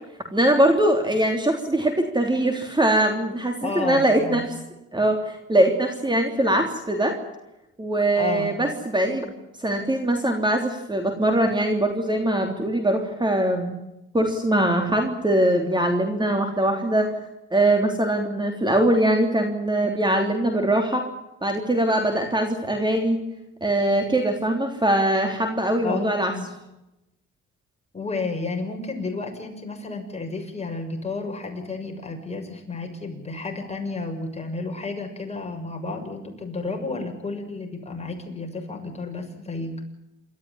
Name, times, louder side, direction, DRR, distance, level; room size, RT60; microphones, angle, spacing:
voice 1, 0.3-4.4 4.9-7.2 7.8-9.3 9.6-13.8 14.1-17.1 17.5-21.0 21.4-23.2 23.6-26.3, right 1 dB, 15° right, 4 dB, 3.4 m, -22 dB
voice 2, 3.6-4.5 8.2-8.5 25.8-26.5 27.9-39.7, left 3 dB, 20° left, 2 dB, 6.6 m, -32 dB
28.0 x 13.5 x 9.7 m, 0.92 s
cardioid pair, 90°, 30 cm